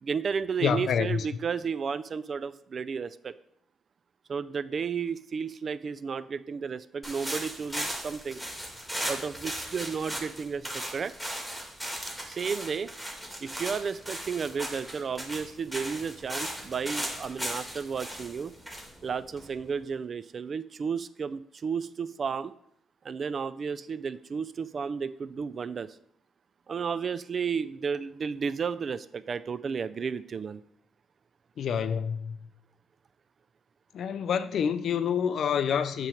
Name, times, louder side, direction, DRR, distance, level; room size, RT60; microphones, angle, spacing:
voice 1, 0.0-3.3 4.3-8.4 9.1-11.1 12.3-12.9 13.4-18.5 19.0-22.5 23.0-26.0 26.7-30.6, right 6 dB, 45° right, 0.3 m, -33 dB
voice 2, 0.6-1.3 31.6-32.4 33.9-36.1, left 7 dB, 65° left, 0.4 m, -27 dB
sound 1, 7.0-19.8, equal, 5° right, 1.6 m, -37 dB
7.4 x 3.1 x 5.0 m
cardioid pair, 90°, 0 cm